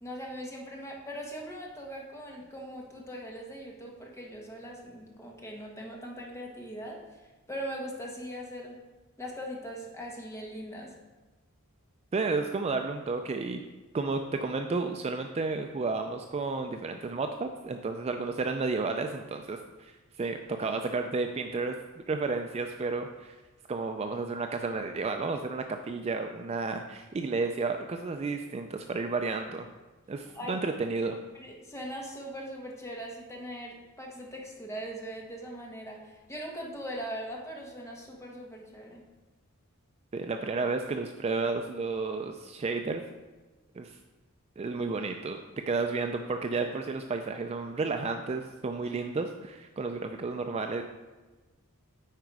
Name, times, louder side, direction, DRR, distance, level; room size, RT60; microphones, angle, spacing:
voice 1, 0.0-7.0 7.5-8.8 9.2-10.9 30.3-30.6 31.3-39.1, equal, 15° left, -1 dB, 1.2 m, -40 dB
voice 2, 12.1-13.6 13.9-19.9 20.2-23.4 23.7-29.7 30.1-31.2 40.1-43.0 43.8-44.0 44.6-45.4 45.7-50.8, right 3 dB, 30° right, 6 dB, 0.3 m, -32 dB
9.0 x 4.8 x 4.7 m, 1.2 s
head